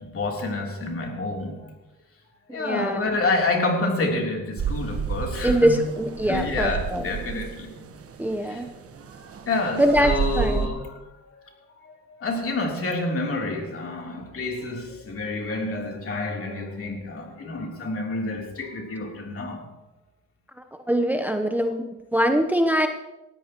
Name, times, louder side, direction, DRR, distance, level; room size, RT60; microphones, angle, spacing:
voice 1, 0.0-1.6 2.5-5.8 6.2-7.8 8.4-8.6 9.5-11.3 11.8-19.7, left 2 dB, 45° left, 1 dB, 3.3 m, -28 dB
voice 2, 2.5-3.0 5.4-7.0 8.2-8.7 9.8-10.7 20.9-22.9, equal, 5° right, 6 dB, 0.8 m, -23 dB
sound 1, 4.6-10.7, right 6 dB, 50° right, 1.3 m, -31 dB
18.5 x 14.0 x 3.0 m, 1.0 s
cardioid pair, 90°, 30 cm